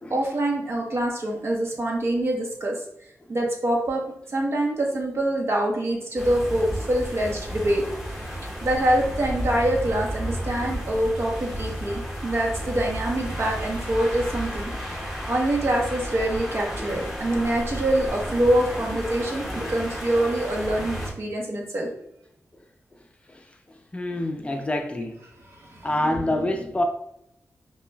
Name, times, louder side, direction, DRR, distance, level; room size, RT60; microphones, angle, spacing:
voice 1, 0.1-2.7 3.3-4.0 4.3-7.8 8.6-14.7 15.3-21.9 25.5-26.2, right 1 dB, 55° right, -1 dB, 0.9 m, -25 dB
sound 1, 6.2-21.1, equal, 5° right, 1.1 m, -32 dB
voice 2, 23.9-25.2 25.8-26.8, left 1 dB, 25° left, 4 dB, 0.4 m, -27 dB
5.5 x 2.2 x 2.2 m, 0.77 s
wide cardioid pair, 85°, 5 cm